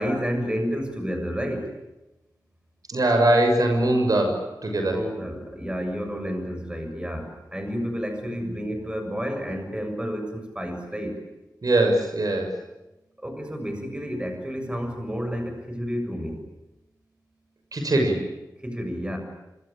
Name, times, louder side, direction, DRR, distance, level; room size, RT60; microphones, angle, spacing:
voice 1, 0.0-1.7 4.9-11.2 13.2-16.4 18.6-19.2, equal, 15° right, 5 dB, 7.3 m, -30 dB
voice 2, 2.9-5.0 11.6-12.5 17.7-18.3, right 1 dB, 55° right, 3 dB, 6.4 m, -21 dB
26.0 x 25.5 x 8.9 m, 0.97 s
wide cardioid pair, 80°, 7 cm